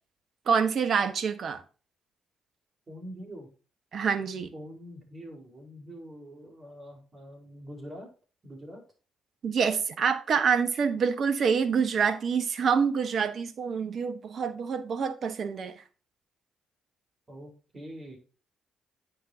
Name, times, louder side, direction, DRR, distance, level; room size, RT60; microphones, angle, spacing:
voice 1, 0.5-1.6 3.9-4.5 9.4-15.7, right 6 dB, 55° right, 1.2 m, -26 dB
voice 2, 2.9-3.5 4.5-8.1 8.4-8.8 17.3-18.2, equal, 35° right, 4.3 m, -44 dB
9.3 x 6.8 x 2.8 m
hypercardioid pair, 45°, 0 cm